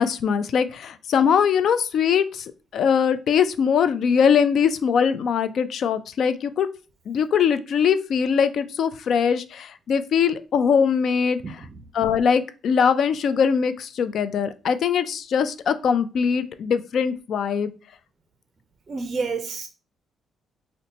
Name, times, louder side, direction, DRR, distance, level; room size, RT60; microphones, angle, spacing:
voice 1, 0.0-2.5 2.7-6.7 7.1-11.6 11.9-17.7, left 7 dB, 65° left, 0.3 m, -21 dB
voice 2, 18.9-19.7, right 4 dB, 40° right, 0.4 m, -28 dB
2.7 x 2.1 x 3.9 m
cardioid pair, 90°, 0 cm